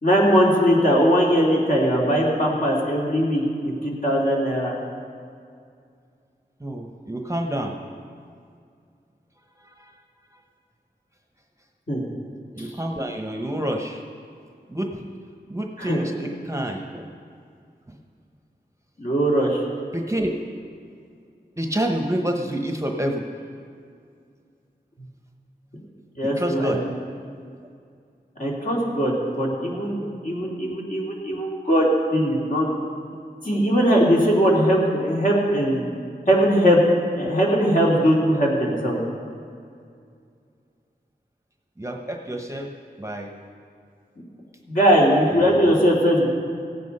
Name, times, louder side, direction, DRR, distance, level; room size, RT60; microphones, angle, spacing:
voice 1, 0.0-4.7 11.9-12.0 12.6-12.7 15.8-16.0 19.0-19.6 26.1-26.9 28.4-32.7 33.4-35.9 36.3-36.8 37.2-39.0 44.7-46.3, equal, 50° left, -4 dB, 3.1 m, -20 dB
voice 2, 6.6-7.8 9.6-10.0 10.3-10.4 12.5-14.0 14.7-15.1 15.5-17.0 19.9-20.3 21.6-23.3 26.2-26.9 29.4-29.6 30.7-30.8 31.3-31.4 33.4-33.6 41.8-42.7 43.0-43.3 45.3-45.7, right 1 dB, 15° right, 2 dB, 1.0 m, -28 dB
17.0 x 8.6 x 5.5 m, 2.3 s
wide cardioid pair, 60°, 18 cm